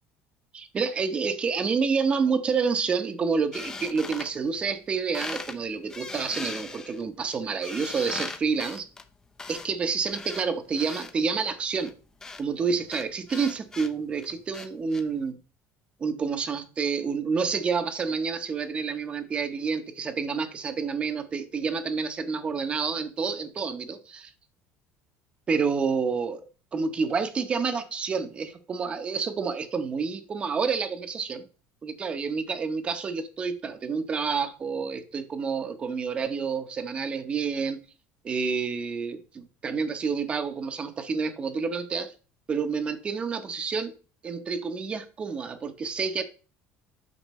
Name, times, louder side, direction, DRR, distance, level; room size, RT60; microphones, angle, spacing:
voice 1, 0.5-8.9 9.5-11.9 12.4-15.4 16.0-24.3 25.5-26.5 26.7-31.4 31.8-37.8 38.2-42.1 42.5-43.9 44.2-46.2, right 5 dB, 20° right, 0.9 m, -29 dB
sound 1, 3.5-4.9 5.1-5.6 5.9-11.1 11.8-15.0, left 3 dB, 15° left, 0.6 m, -39 dB
9.1 x 6.3 x 3.1 m
cardioid pair, 170°, 5 cm